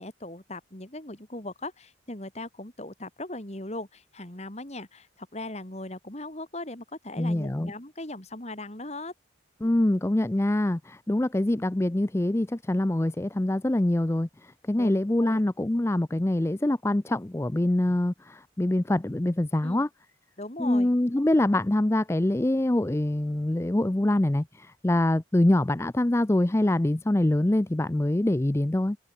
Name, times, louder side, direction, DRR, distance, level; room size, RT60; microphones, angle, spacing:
voice 1, 0.0-9.1 14.7-14.9 15.2-15.4 19.6-19.8 20.4-20.9, left 2 dB, 35° left, 2.9 m, -39 dB
voice 2, 7.2-7.7 9.6-19.9 20.6-29.0, left 1 dB, 15° left, 0.4 m, -25 dB
head